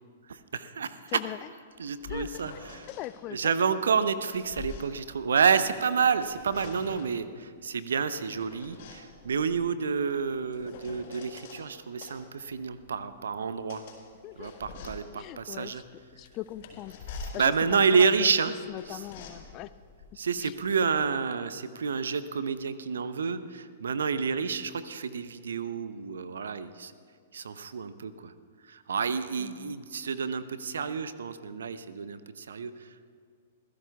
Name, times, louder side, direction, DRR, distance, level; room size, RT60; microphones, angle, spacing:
voice 1, 0.3-1.2 1.8-2.9 3.3-13.8 14.4-15.8 17.3-18.5 18.8-19.1 20.2-26.9 27.3-28.3 28.6-33.1, right 6 dB, 65° right, 13 dB, 0.7 m, -29 dB
sound 1, 1.7-3.1 3.9-5.7 6.1-7.2 8.0-11.6 12.0-21.1, left 3 dB, 50° left, 4.2 m, -46 dB
voice 2, 2.9-3.5 14.2-14.5 15.2-15.8 16.2-17.0 17.3-17.4 17.7-18.3 18.7-19.7 29.4-29.8, left 16 dB, 35° left, 17 dB, 0.4 m, -39 dB
26.5 x 16.0 x 2.3 m, 2.2 s
figure-of-eight pair, 105°, 0 cm